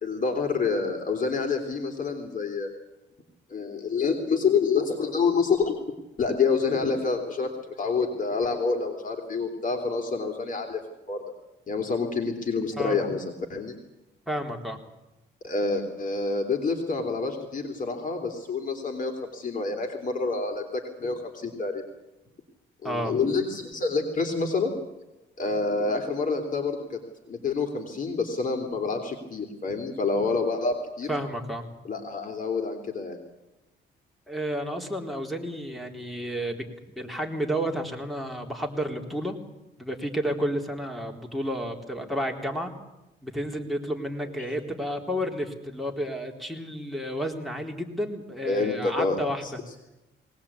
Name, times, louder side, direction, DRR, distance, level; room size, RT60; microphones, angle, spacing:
voice 1, 0.0-2.7 3.5-5.7 6.2-7.5 7.8-10.8 11.1-11.2 11.7-13.7 15.4-21.8 22.8-24.7 25.4-27.0 27.3-31.1 31.8-33.2 44.2-44.5 48.4-49.5, left 4 dB, 40° left, 4 dB, 3.3 m, -27 dB
voice 2, 14.3-14.8 22.8-23.1 31.1-31.6 34.3-36.7 36.9-39.4 39.8-42.7 43.2-49.5, equal, ahead, 2 dB, 3.8 m, -31 dB
21.0 x 19.0 x 8.7 m, 0.98 s
cardioid pair, 90°, 20 cm